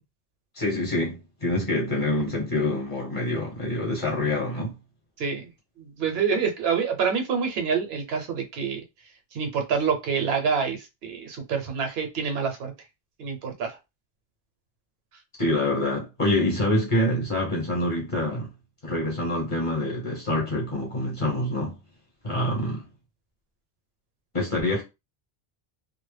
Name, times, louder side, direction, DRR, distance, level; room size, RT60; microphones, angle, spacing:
voice 1, 0.5-4.7 15.4-18.5 18.8-21.7 22.2-22.8 24.3-24.8, left 1 dB, 30° left, 0.9 m, -26 dB
voice 2, 5.2-5.5 5.8-8.8 9.3-12.7 13.2-13.8, right 6 dB, 70° right, 0.8 m, -27 dB
2.1 x 2.0 x 3.2 m
omnidirectional pair, 1.1 m